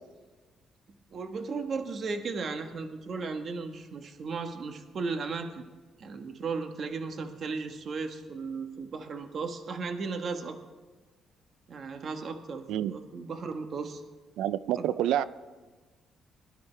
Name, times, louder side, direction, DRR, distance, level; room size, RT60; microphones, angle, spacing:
voice 1, 1.1-5.6 6.0-10.6 11.7-14.0 14.8-14.9, right 4 dB, 55° right, 1.2 m, -35 dB
voice 2, 14.4-15.2, right 11 dB, 90° right, 0.4 m, -27 dB
21.0 x 11.0 x 3.3 m
cardioid pair, 90°, 0 cm